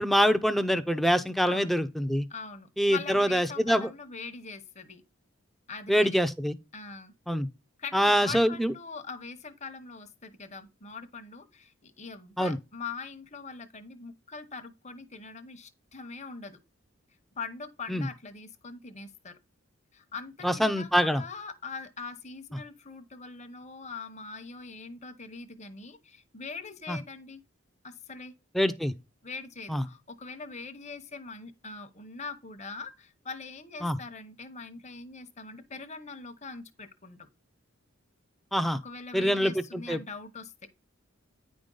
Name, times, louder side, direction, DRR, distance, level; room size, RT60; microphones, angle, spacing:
voice 1, 0.0-2.3 2.8-3.9 5.9-6.6 7.3-7.5 7.9-8.7 12.4-12.6 17.9-18.1 20.4-21.2 26.9-27.0 28.5-28.9 29.7-29.8 33.8-34.0 38.5-38.8 39.1-40.0, equal, ahead, 0.5 m, -25 dB
voice 2, 2.3-5.0 5.7-6.1 6.7-7.1 7.8-16.6 17.4-19.4 19.9-27.4 27.8-28.3 29.2-37.3 38.8-40.5, left 4 dB, 30° left, 0.9 m, -42 dB
9.6 x 5.2 x 3.8 m
head